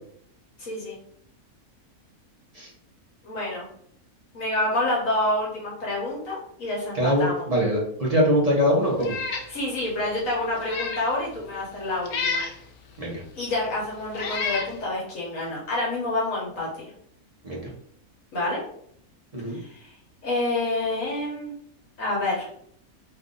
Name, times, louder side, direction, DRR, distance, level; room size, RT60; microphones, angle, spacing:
voice 1, 0.6-1.0 3.2-3.7 4.3-7.5 9.5-12.4 13.3-16.9 18.3-18.6 19.5-19.9 20.2-21.5 22.0-22.5, left 2 dB, 65° left, -5 dB, 1.4 m, -28 dB
voice 2, 6.9-9.1 13.0-13.2 17.4-17.7 19.3-19.6, equal, 30° right, -4 dB, 0.8 m, -23 dB
Meow, 9.0-9.5 9.9-10.0 10.5-11.1 12.1-12.6 13.4-13.5 14.1-14.7, left 4 dB, 90° left, 1.1 m, -29 dB
3.2 x 2.6 x 3.8 m, 0.65 s
omnidirectional pair, 1.5 m